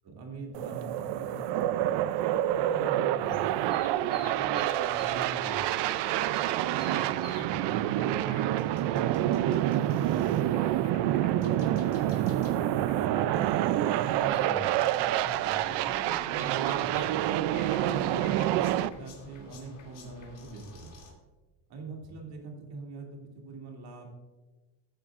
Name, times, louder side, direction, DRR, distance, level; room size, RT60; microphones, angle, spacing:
voice 1, 0.0-2.1 2.6-3.5 4.2-5.8 6.6-8.3 8.8-9.7 14.0-17.2 17.8-20.9 21.7-24.1, right 3 dB, 60° right, 0 dB, 2.7 m, -43 dB
sound 1, 0.5-18.9, right 13 dB, 75° right, 0.5 m, -27 dB
sound 2, 3.1-21.1, left 3 dB, 45° left, 2.7 m, -51 dB
15.5 x 9.1 x 2.5 m, 1.2 s
cardioid pair, 145°, 43 cm